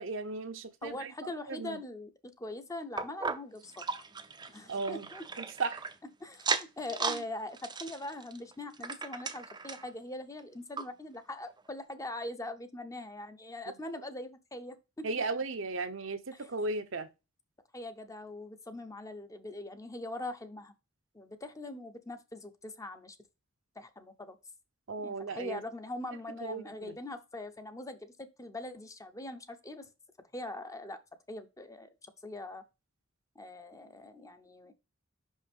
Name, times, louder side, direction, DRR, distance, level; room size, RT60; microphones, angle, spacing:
voice 1, 0.0-1.8 4.7-5.1 5.6-5.9 7.1-7.2 15.0-17.1 24.9-25.6 26.4-27.0, right 3 dB, 65° right, 0.8 m, -36 dB
voice 2, 0.8-2.1 2.4-3.8 4.5-5.2 6.2-15.1 16.3-16.5 17.7-20.7 21.1-23.2 23.8-24.4 25.0-29.9 30.3-31.0 31.3-32.6 33.3-34.7, left 2 dB, 15° left, 0.7 m, -42 dB
sound 1, 3.0-5.9 6.3-7.2 7.5-9.9 10.4-10.5 10.8-10.9 11.5-11.6, right 5 dB, 20° right, 0.5 m, -36 dB
5.7 x 5.4 x 3.5 m
head